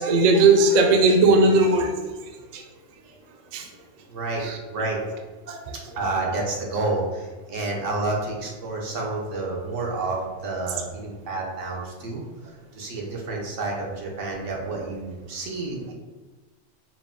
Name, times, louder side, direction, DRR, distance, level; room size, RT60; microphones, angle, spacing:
voice 1, 0.0-1.9 2.5-2.6 3.5-3.7 4.4-4.6 5.5-5.7, right 3 dB, 55° right, 3 dB, 0.4 m, -18 dB
voice 2, 4.1-5.0 5.9-15.9, right 2 dB, 85° right, -2 dB, 1.2 m, -29 dB
4.9 x 2.1 x 3.6 m, 1.3 s
omnidirectional pair, 1.3 m